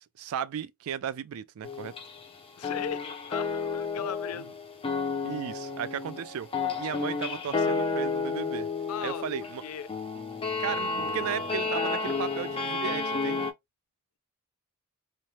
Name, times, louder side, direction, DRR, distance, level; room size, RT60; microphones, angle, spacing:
voice 1, 0.2-1.9 4.3-4.5 5.2-8.7 9.0-9.6 10.6-13.5, right 8 dB, 70° right, 0.3 m, -35 dB
sound 1, 1.6-2.4 2.6-13.5, left 4 dB, 25° left, 0.5 m, -31 dB
voice 2, 2.6-4.5 8.9-9.2 9.6-9.9, left 7 dB, 80° left, 0.4 m, -37 dB
3.1 x 2.0 x 2.7 m
head